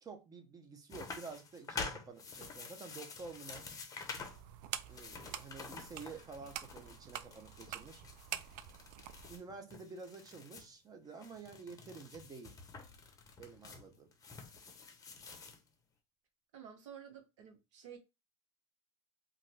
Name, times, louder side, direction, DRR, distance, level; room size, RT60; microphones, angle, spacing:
voice 1, 0.0-3.7 4.9-8.0 9.3-12.6 13.4-14.1, right 4 dB, 25° right, 0.8 m, -50 dB
sound 1, 0.9-4.4 4.8-10.7 11.1-15.6, left 4 dB, 20° left, 0.8 m, -48 dB
sound 2, 4.1-9.4, right 11 dB, 60° right, 0.4 m, -47 dB
voice 2, 16.5-18.0, right 8 dB, 75° right, 1.0 m, -52 dB
2.5 x 2.5 x 3.3 m
supercardioid pair, 105°, 16 cm